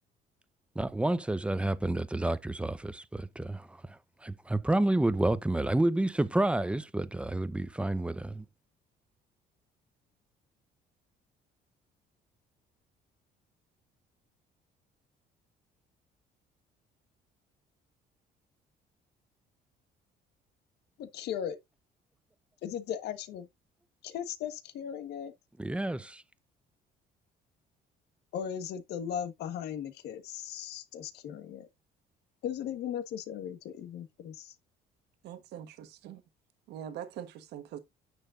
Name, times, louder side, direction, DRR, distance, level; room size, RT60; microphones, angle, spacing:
voice 1, 0.7-8.4 25.6-26.2, right 1 dB, 5° right, 0.7 m, -29 dB
voice 2, 21.0-21.6 22.6-23.5 24.0-25.3 28.3-31.7 32.4-34.5, left 9 dB, 75° left, 1.5 m, -37 dB
voice 3, 35.2-36.2 36.7-37.8, right 10 dB, 80° right, 1.4 m, -43 dB
9.7 x 6.5 x 2.5 m
cardioid pair, 110°, 17 cm